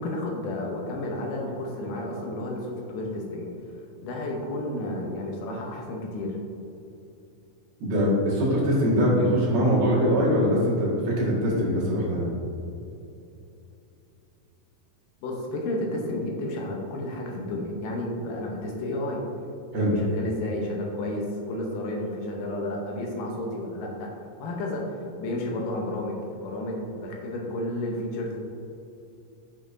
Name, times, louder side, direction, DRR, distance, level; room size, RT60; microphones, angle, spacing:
voice 1, 0.0-3.5 4.0-6.4 15.2-19.2 19.7-24.1 24.4-28.4, left 1 dB, 75° left, -1 dB, 2.3 m, -31 dB
voice 2, 7.8-12.3 19.7-19.9, equal, 80° right, -6 dB, 3.7 m, -22 dB
9.0 x 6.5 x 2.6 m, 2.8 s
omnidirectional pair, 4.2 m